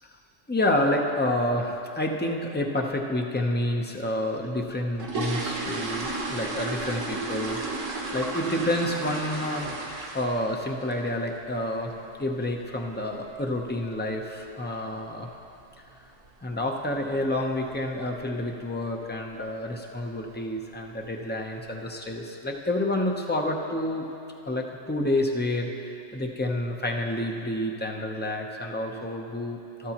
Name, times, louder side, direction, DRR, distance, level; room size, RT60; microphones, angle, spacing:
voice 1, 0.5-7.6 8.1-9.7 10.1-11.9 12.2-15.3 16.4-24.1 24.5-29.9, left 1 dB, 15° left, 1 dB, 0.4 m, -29 dB
sound 1, 4.6-10.5 10.8-11.1 11.4-11.5 11.9-12.0 12.4-12.6 12.9-13.0 13.6-13.7 13.9-14.1 14.6-14.9 15.2-15.3 15.7-15.9 16.2-16.3 16.7-16.8 17.5-17.8 18.1-18.4 18.8-18.9 19.3-19.4 20.2-20.3 20.7-21.2 21.7-21.8, right 2 dB, 90° right, 1.5 m, -33 dB
13.0 x 12.5 x 2.9 m, 2.7 s
omnidirectional pair, 1.3 m